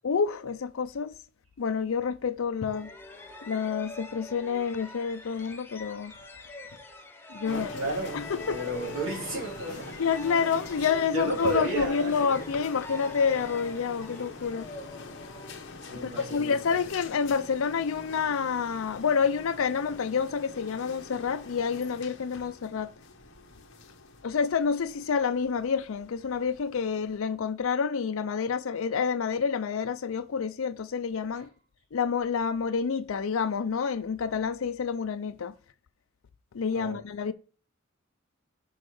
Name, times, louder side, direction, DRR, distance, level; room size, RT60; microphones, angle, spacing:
voice 1, 0.0-1.1 1.6-2.9 3.4-6.1 7.3-7.7 8.1-8.6 10.0-14.7 16.0-22.9 24.2-31.5 31.9-35.5 36.5-37.3, left 6 dB, 80° left, 0.5 m, -28 dB
sound 1, 2.7-16.2, left 2 dB, 10° left, 0.7 m, -45 dB
voice 2, 7.4-8.2 8.5-10.0 10.8-10.9 11.1-12.4 15.9-16.8 31.2-31.5 36.7-37.0, right 2 dB, 70° right, 2.8 m, -33 dB
sound 2, 7.5-27.2, left 3 dB, 60° left, 1.0 m, -45 dB
6.4 x 5.3 x 4.8 m
head